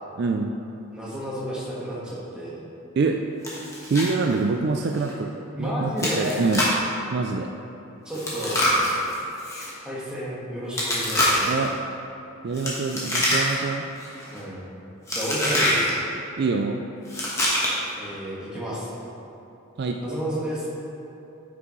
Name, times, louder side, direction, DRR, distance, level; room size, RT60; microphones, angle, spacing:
voice 1, 0.2-0.5 3.0-3.2 3.8-5.3 5.6-5.9 6.2-6.7 7.1-7.5 11.5-11.7 12.4-13.8 16.4-16.8 19.8-20.0, right 4 dB, 50° right, 3 dB, 0.3 m, -25 dB
voice 2, 0.9-2.6 5.5-6.4 8.0-8.6 9.8-11.6 14.3-14.6 15.1-15.9 18.0-18.9 20.0-20.7, equal, 5° right, -8 dB, 1.4 m, -31 dB
Chewing mastication, 3.4-4.1 4.4-4.5 5.0-5.1 6.0-6.9 8.1-9.7 10.7-11.7 12.5-13.7 14.0-14.4 15.1-15.9 17.1-17.9, left 1 dB, 15° left, 1.2 m, -25 dB
9.4 x 6.1 x 3.1 m, 2.8 s
head